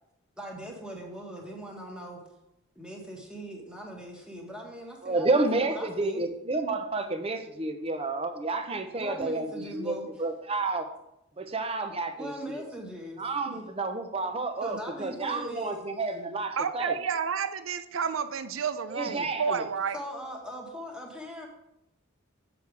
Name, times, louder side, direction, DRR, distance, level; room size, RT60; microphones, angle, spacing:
voice 1, 0.4-2.2 2.7-6.3 9.0-10.2 12.1-13.2 13.5-13.6 14.6-15.8 19.9-21.5, equal, 5° right, -1 dB, 1.6 m, -40 dB
voice 2, 5.0-10.9 11.4-12.6 13.2-16.9 18.9-19.7, right 3 dB, 30° right, 7 dB, 0.8 m, -30 dB
voice 3, 16.6-20.0, right 6 dB, 80° right, 12 dB, 0.5 m, -30 dB
7.1 x 7.0 x 4.8 m, 0.84 s
head